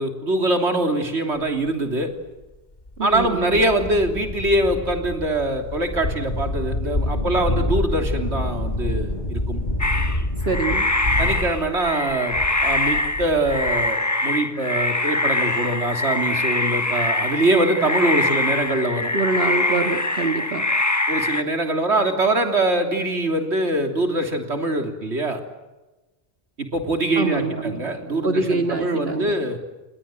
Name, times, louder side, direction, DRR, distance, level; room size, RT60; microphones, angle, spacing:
voice 1, 0.0-2.1 3.0-9.6 11.2-19.1 21.1-25.4 26.6-29.6, right 1 dB, 80° right, 4 dB, 3.5 m, -23 dB
sound 1, 1.7-1.8 2.4-2.5 2.9-13.9, left 1 dB, 40° left, 3.0 m, -27 dB
voice 2, 3.0-3.5 10.5-10.9 19.1-20.7 27.2-27.9 28.2-29.3, right 3 dB, 60° right, 4 dB, 2.0 m, -24 dB
sound 2, 9.8-21.4, left 2 dB, 15° left, 1.0 m, -23 dB
29.5 x 21.5 x 7.9 m, 1.1 s
omnidirectional pair, 1.1 m